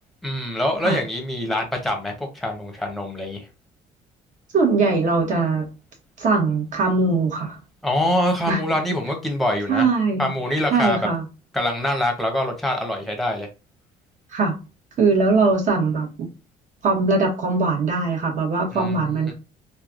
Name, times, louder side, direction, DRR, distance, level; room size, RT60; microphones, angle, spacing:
voice 1, 0.2-3.4 7.8-9.9 10.2-11.0 11.5-13.5 18.7-19.3, left 1 dB, ahead, 0.9 m, -24 dB
voice 2, 4.5-5.7 6.2-7.6 8.5-8.6 9.7-10.3 10.7-11.2 14.3-14.5 15.0-16.3 16.8-19.3, right 4 dB, 50° right, 1.2 m, -21 dB
3.2 x 2.3 x 2.5 m
cardioid pair, 110°, 17 cm